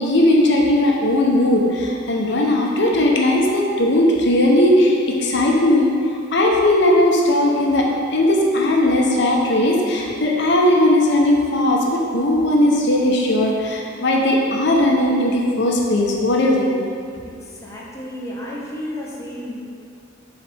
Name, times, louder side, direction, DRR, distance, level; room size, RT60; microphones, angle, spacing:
voice 1, 0.0-5.9 6.3-16.8, left 1 dB, 60° left, -1 dB, 0.7 m, -17 dB
voice 2, 17.2-19.6, left 1 dB, 15° left, -5 dB, 0.7 m, -32 dB
7.0 x 4.0 x 3.4 m, 2.4 s
head